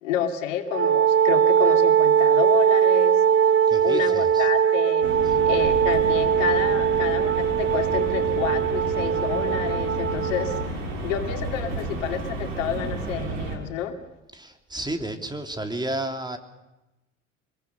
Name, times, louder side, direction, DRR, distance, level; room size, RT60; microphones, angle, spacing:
voice 1, 0.0-3.2 3.8-5.1 5.5-14.0, left 9 dB, 80° left, 6 dB, 2.7 m, -30 dB
Wind instrument woodwind instrument, 0.7-10.7, right 8 dB, 40° right, 2.2 m, -21 dB
voice 2, 3.7-4.5 5.1-5.4 14.3-16.4, right 1 dB, 10° right, 6 dB, 3.3 m, -32 dB
sound 1, 5.0-13.6, right 4 dB, 80° right, 4.1 m, -32 dB
sound 2, 7.4-13.2, left 11 dB, 55° left, 1.7 m, -39 dB
25.0 x 22.0 x 6.6 m, 0.98 s
hypercardioid pair, 65°, 37 cm